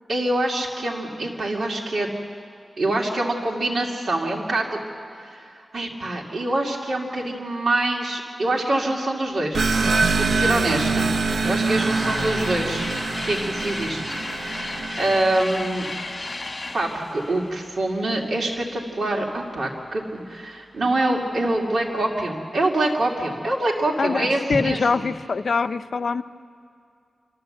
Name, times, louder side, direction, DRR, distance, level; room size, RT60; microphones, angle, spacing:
voice 1, 0.1-2.1 2.8-4.8 5.2-9.7 10.3-11.1 11.4-12.9 13.3-15.9 16.7-25.1, right 1 dB, 65° right, -2 dB, 2.4 m, -25 dB
sound 1, 9.5-15.8, right 4 dB, 80° right, 0.8 m, -24 dB
sound 2, 10.4-18.8, left 2 dB, 40° left, 2.0 m, -35 dB
voice 2, 24.0-26.2, left 4 dB, 70° left, 12 dB, 0.5 m, -24 dB
29.0 x 12.5 x 7.7 m, 2.4 s
wide cardioid pair, 75°, 0 cm